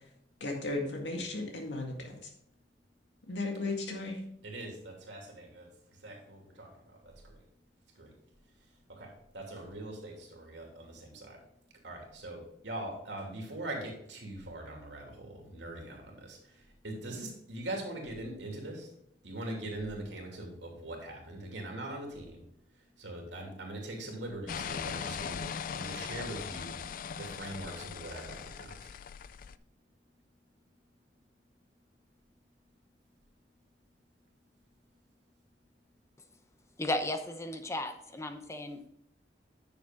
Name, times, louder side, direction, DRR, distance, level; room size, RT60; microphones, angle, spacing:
voice 1, 0.4-2.3 3.2-4.2, left 2 dB, 85° left, 2 dB, 2.1 m, -35 dB
voice 2, 4.4-5.7 6.0-7.3 8.0-8.1 8.9-11.4 11.8-16.4 16.8-18.9 19.2-22.4 23.0-25.4 25.7-26.8 27.2-28.7, right 1 dB, 85° right, 0 dB, 2.8 m, -42 dB
sound 1, 24.5-29.6, left 7 dB, 50° left, 0.3 m, -40 dB
voice 3, 36.8-38.9, left 1 dB, 15° left, 8 dB, 0.8 m, -35 dB
10.0 x 6.7 x 3.8 m, 0.75 s
head